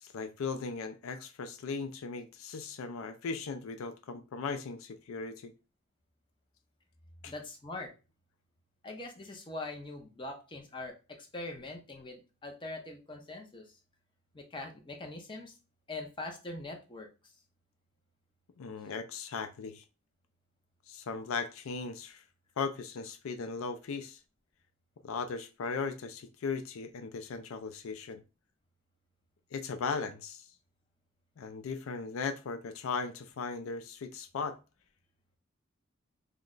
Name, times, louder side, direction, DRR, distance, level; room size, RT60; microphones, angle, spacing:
voice 1, 0.0-5.5 7.2-7.3 18.6-19.8 20.9-22.2 22.6-24.2 25.0-28.2 29.5-30.5 31.4-34.6, left 5 dB, 80° left, 0.4 m, -37 dB
voice 2, 7.2-7.9 8.8-13.8 14.3-15.6 15.9-17.3, left 2 dB, 25° left, 0.7 m, -43 dB
3.1 x 2.1 x 3.7 m
head